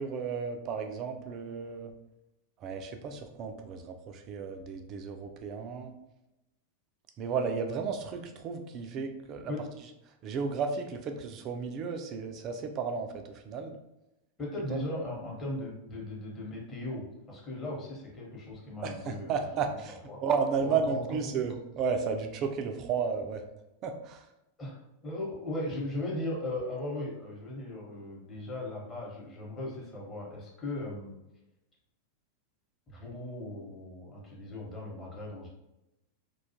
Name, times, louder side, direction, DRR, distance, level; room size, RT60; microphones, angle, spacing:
voice 1, 0.0-1.9 2.6-5.9 7.2-9.5 10.2-13.7 14.7-14.8 18.8-19.9 20.2-23.4 23.8-24.2, right 5 dB, 35° right, 5 dB, 0.3 m, -33 dB
voice 2, 14.4-19.5 20.1-20.2 20.6-21.3 24.6-24.7 25.0-31.2 32.9-35.5, left 1 dB, 20° left, -3 dB, 0.9 m, -38 dB
2.4 x 2.3 x 2.7 m, 0.92 s
figure-of-eight pair, 90°, 0 cm